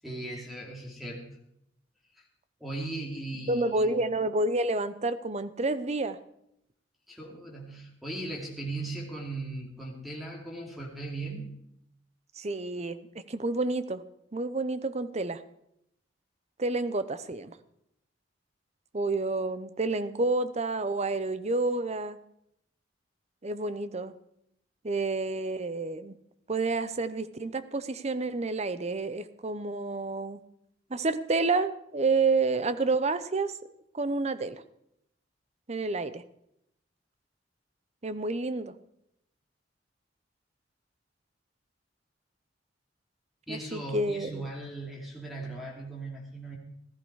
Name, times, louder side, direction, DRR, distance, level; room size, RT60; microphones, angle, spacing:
voice 1, 0.0-1.3 2.2-2.3 2.6-4.0 7.1-11.5 43.5-46.6, right 2 dB, ahead, -1 dB, 2.8 m, -38 dB
voice 2, 3.5-6.2 12.4-14.0 14.3-15.4 16.6-17.6 18.9-22.2 23.4-24.1 24.8-26.1 26.5-30.4 30.9-33.5 33.9-34.6 35.7-36.2 38.0-38.7 43.5-44.4, right 3 dB, 35° right, 13 dB, 0.8 m, -29 dB
15.0 x 13.5 x 4.8 m, 0.76 s
head